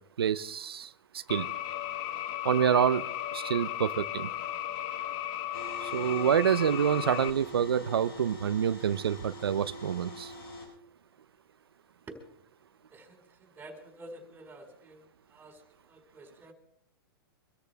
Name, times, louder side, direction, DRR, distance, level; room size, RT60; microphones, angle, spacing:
voice 1, 0.2-1.5 2.4-3.0 3.3-4.3 5.8-10.3, right 8 dB, 90° right, 12 dB, 0.7 m, -27 dB
sound 1, 1.3-7.3, left 12 dB, 40° left, 1.3 m, -35 dB
sound 2, 5.5-10.7, right 2 dB, 90° left, 7.7 m, -45 dB
voice 2, 12.9-15.6 15.9-16.5, right 1 dB, 15° right, 3 dB, 4.6 m, -49 dB
25.5 x 13.5 x 3.5 m, 0.71 s
hypercardioid pair, 130°, 12 cm